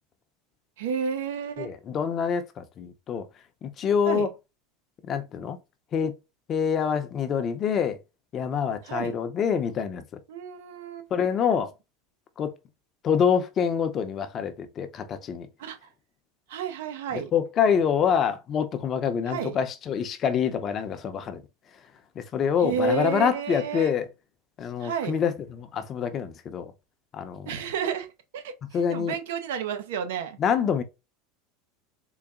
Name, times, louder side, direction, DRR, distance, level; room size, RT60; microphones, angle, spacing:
voice 1, 0.8-1.7 4.0-4.3 8.8-9.1 10.3-11.1 15.6-15.9 16.5-17.3 19.3-19.6 22.6-23.9 24.8-25.2 27.5-28.1 28.3-28.5 28.9-30.4, right 6 dB, 85° right, 0.7 m, -31 dB
voice 2, 1.6-3.3 3.6-4.3 5.0-5.6 5.9-6.1 6.5-8.0 8.3-10.2 11.1-11.7 12.4-12.5 13.0-15.5 17.1-21.4 22.2-24.1 24.6-26.7 27.1-27.5 28.7-29.2 30.4-30.8, left 7 dB, 35° left, 0.6 m, -26 dB
3.9 x 2.1 x 3.6 m
supercardioid pair, 125°, 0 cm